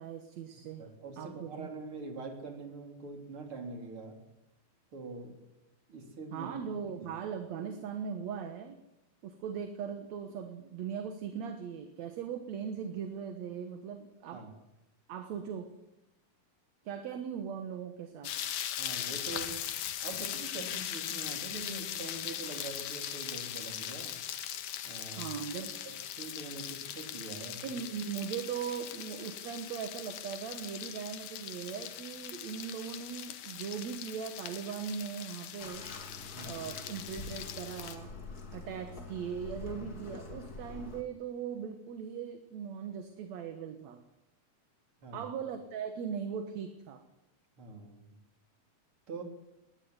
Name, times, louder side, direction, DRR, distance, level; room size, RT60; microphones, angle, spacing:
voice 1, 0.0-0.8 1.2-1.7 6.3-8.8 9.2-14.5 15.1-15.8 16.8-18.3 25.2-25.8 27.6-35.9 36.5-38.1 38.5-44.0 45.1-47.0, right 7 dB, 60° right, 7 dB, 2.5 m, -39 dB
voice 2, 0.8-4.2 4.9-5.4 5.9-6.9 14.3-14.5 18.8-19.6 20.0-24.2 24.8-25.3 25.8-27.8 36.3-36.7 45.0-45.3 47.6-48.2 49.1-49.2, right 3 dB, 40° right, 4 dB, 4.4 m, -44 dB
sound 1, 18.2-38.0, left 11 dB, 75° left, 2.9 m, -40 dB
Bathtub (filling or washing), 35.6-41.0, left 3 dB, 30° left, 2.7 m, -45 dB
20.0 x 19.0 x 9.7 m, 0.93 s
omnidirectional pair, 3.7 m